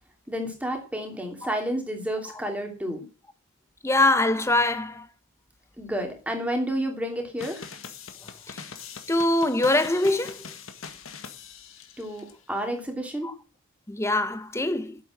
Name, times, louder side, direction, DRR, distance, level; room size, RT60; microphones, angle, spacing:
voice 1, 0.3-3.1 5.8-7.7 12.0-13.3, equal, 5° right, 2.8 m, -30 dB
voice 2, 3.8-5.1 8.5-8.6 9.1-10.4 13.2-13.3 13.9-15.0, left 2 dB, 10° left, 0.8 m, -23 dB
sound 1, 7.4-12.3, left 6 dB, 65° left, 1.8 m, -42 dB
9.2 x 7.8 x 7.8 m
head